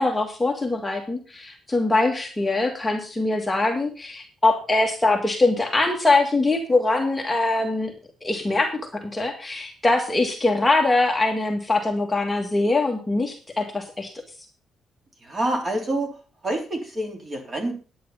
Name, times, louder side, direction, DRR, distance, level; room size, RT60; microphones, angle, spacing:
voice 1, 0.0-7.9 8.2-14.1, left 2 dB, 10° left, 2 dB, 1.8 m, -22 dB
voice 2, 15.2-16.1 16.4-17.7, right 1 dB, 30° right, 3 dB, 3.4 m, -27 dB
9.8 x 9.5 x 5.6 m, 0.36 s
cardioid pair, 140°, 0 cm